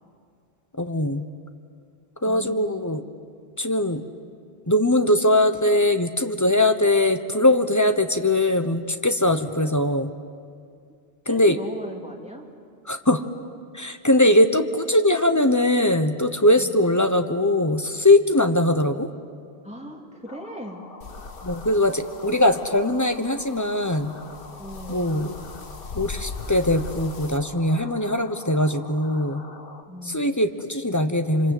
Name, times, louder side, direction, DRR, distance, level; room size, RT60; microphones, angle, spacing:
voice 1, 0.8-1.3 2.2-3.0 3.6-4.0 4.7-10.1 11.3-11.6 12.9-13.2 13.7-19.1 21.4-24.1 24.9-25.3 25.9-29.4 30.1-31.5, left 1 dB, 20° left, 8 dB, 1.0 m, -21 dB
voice 2, 2.2-2.8 11.3-12.5 16.6-16.8 19.6-20.8 22.2-22.4 24.6-25.2 29.9-30.2, equal, 5° right, 0 dB, 2.9 m, -38 dB
sound 1, 20.3-29.8, left 3 dB, 60° left, 1.6 m, -44 dB
sound 2, 21.0-27.4, left 4 dB, 85° left, 1.6 m, -40 dB
26.5 x 26.0 x 8.0 m, 2.3 s
omnidirectional pair, 1.1 m